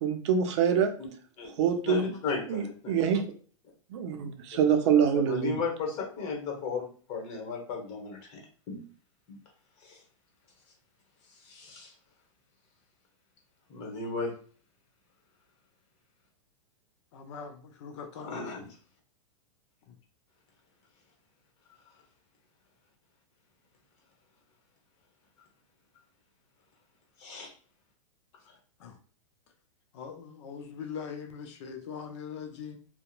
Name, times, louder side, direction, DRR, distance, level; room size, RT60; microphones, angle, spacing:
voice 1, 0.0-0.9 1.6-2.1 2.5-3.2 3.9-5.6, right 7 dB, 60° right, 6 dB, 0.5 m, -25 dB
voice 2, 1.8-3.0 4.8-8.4 8.7-8.8 9.3-9.4 9.8-10.0 11.4-11.9 13.7-14.3 18.1-18.7 27.2-27.5, left 4 dB, 40° left, 0 dB, 1.1 m, -35 dB
voice 3, 17.1-18.5 19.9-20.0 28.8-29.0 29.9-32.8, left 6 dB, 60° left, 5 dB, 0.5 m, -41 dB
2.8 x 2.1 x 2.4 m, 0.43 s
hypercardioid pair, 120°, 17 cm